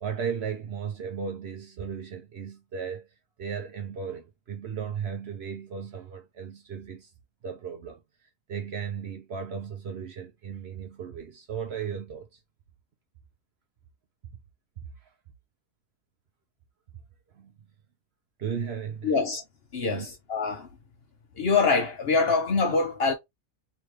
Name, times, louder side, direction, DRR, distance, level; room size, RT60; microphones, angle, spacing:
voice 1, 0.0-3.1 3.4-7.1 7.4-8.0 8.5-12.3 15.0-15.1 17.3-17.5 18.4-19.2 19.8-20.1, right 7 dB, 60° right, 0.8 m, -35 dB
voice 2, 19.0-19.4 19.7-20.7 21.4-23.1, left 4 dB, 55° left, 0.8 m, -24 dB
3.4 x 2.9 x 3.0 m
omnidirectional pair, 1.5 m